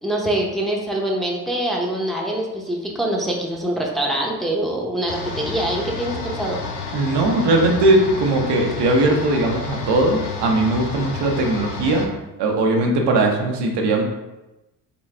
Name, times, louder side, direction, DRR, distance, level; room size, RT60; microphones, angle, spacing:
voice 1, 0.0-6.6, right 1 dB, ahead, -2 dB, 0.7 m, -24 dB
sound 1, 5.1-12.1, left 4 dB, 85° left, 0.7 m, -30 dB
voice 2, 6.9-12.1 12.4-14.0, right 2 dB, 80° right, 1 dB, 0.8 m, -19 dB
3.9 x 2.3 x 3.2 m, 0.98 s
supercardioid pair, 65°, 40 cm